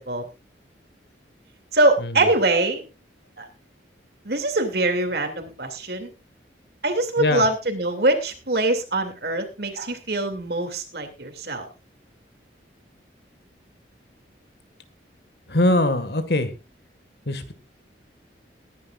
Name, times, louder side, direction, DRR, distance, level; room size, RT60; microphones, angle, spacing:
voice 1, 1.7-2.8 3.4-3.5 4.2-6.1 6.8-11.7, right 2 dB, 60° right, 5 dB, 2.8 m, -23 dB
voice 2, 15.5-16.5 17.3-17.5, left 1 dB, 65° left, 10 dB, 1.9 m, -22 dB
21.0 x 10.5 x 2.5 m, 0.28 s
head